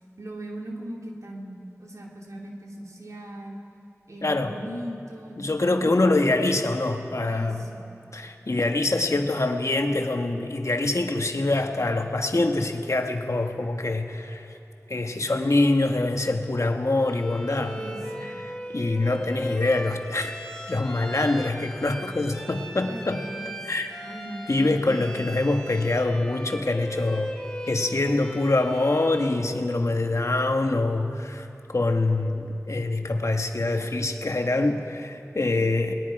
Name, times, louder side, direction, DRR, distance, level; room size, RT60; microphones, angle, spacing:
voice 1, 0.2-3.6 4.1-6.4 7.3-7.8 17.7-18.3 22.8-23.6 24.0-25.1 35.5-35.7, right 1 dB, 80° right, -1 dB, 2.6 m, -39 dB
voice 2, 4.2-4.6 5.4-7.6 8.1-14.6 14.9-17.8 18.4-20.3 20.7-23.2 23.6-23.9 24.5-27.3 27.7-35.9, left 2 dB, 75° left, 4 dB, 1.5 m, -25 dB
Bowed string instrument, 17.0-29.5, equal, 10° left, 2.8 m, -38 dB
29.5 x 20.5 x 4.8 m, 2.9 s
wide cardioid pair, 50°, 5 cm